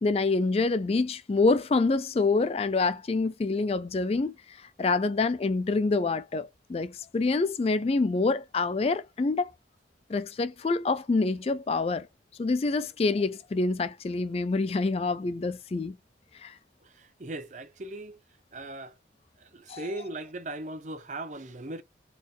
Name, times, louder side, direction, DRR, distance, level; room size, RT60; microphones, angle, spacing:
voice 1, 0.0-9.5 10.1-12.1 12.4-16.0 16.4-16.5 19.7-19.9, left 3 dB, 30° left, 0.3 m, -26 dB
voice 2, 16.8-18.2 18.5-19.0 19.4-21.8, right 2 dB, 40° right, 0.7 m, -38 dB
4.1 x 3.4 x 3.8 m
head